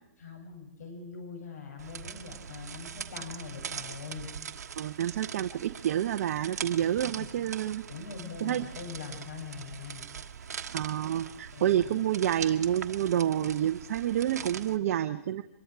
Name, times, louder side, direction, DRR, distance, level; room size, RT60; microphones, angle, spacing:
voice 1, 0.2-4.3 6.7-7.3 7.9-10.1 11.5-11.9, left 5 dB, 80° left, 3 dB, 7.4 m, -43 dB
sound 1, 1.8-14.8, right 7 dB, 85° right, 1.3 m, -42 dB
voice 2, 4.8-7.8 8.4-8.6 10.7-15.4, right 11 dB, 60° right, 8 dB, 1.0 m, -28 dB
24.5 x 22.5 x 4.8 m, 0.91 s
hypercardioid pair, 145°, 9 cm